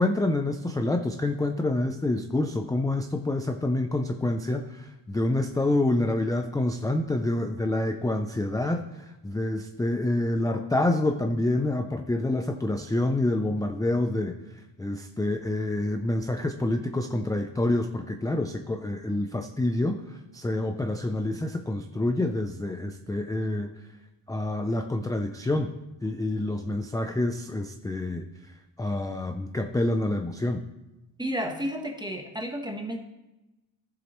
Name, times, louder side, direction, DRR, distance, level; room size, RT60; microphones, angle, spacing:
voice 1, 0.0-8.9 9.2-14.4 14.8-20.0 20.3-23.7 24.3-25.7 26.0-28.3 28.8-30.6, left 2 dB, 10° left, 5 dB, 0.3 m, -27 dB
voice 2, 31.2-33.0, equal, 10° right, 3 dB, 1.0 m, -32 dB
15.0 x 7.4 x 3.0 m, 0.98 s
wide cardioid pair, 150°, 47 cm